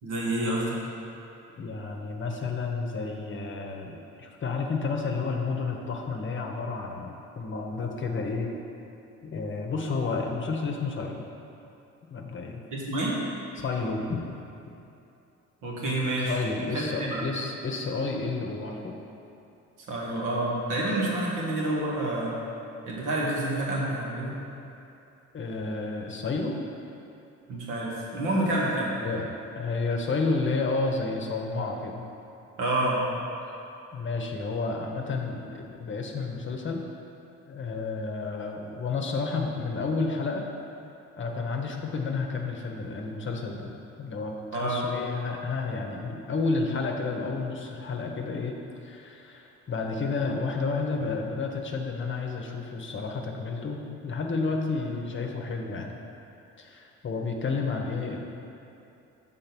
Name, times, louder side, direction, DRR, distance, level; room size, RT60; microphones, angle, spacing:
voice 1, 0.0-0.8 12.7-13.2 15.6-16.4 16.7-17.2 19.9-22.3 22.9-24.4 27.5-28.9 32.6-33.0 44.5-44.9, right 1 dB, 90° right, -4 dB, 1.5 m, -28 dB
voice 2, 1.6-8.5 9.2-11.2 12.1-12.6 13.6-14.2 16.3-19.0 25.3-26.6 29.0-29.3 29.6-32.0 33.9-36.8 37.5-40.5 41.2-43.7 44.0-48.5 48.8-56.0 56.6-58.2, left 4 dB, 40° left, 1 dB, 0.8 m, -31 dB
6.6 x 3.8 x 5.9 m, 2.8 s
cardioid pair, 90°, 30 cm